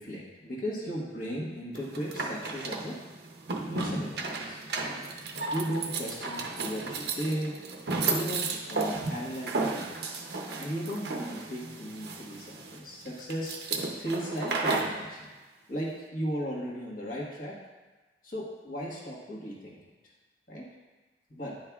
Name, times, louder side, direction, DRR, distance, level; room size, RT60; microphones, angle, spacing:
voice 1, 0.0-2.9 3.7-4.6 5.5-7.6 8.1-10.2 10.6-15.3 15.7-17.6 18.2-19.8 20.5-20.6 21.3-21.6, equal, 50° left, -3 dB, 1.4 m, -36 dB
sound 1, 1.7-15.0, right 3 dB, 60° right, 0.7 m, -33 dB
9.8 x 5.5 x 2.3 m, 1.3 s
head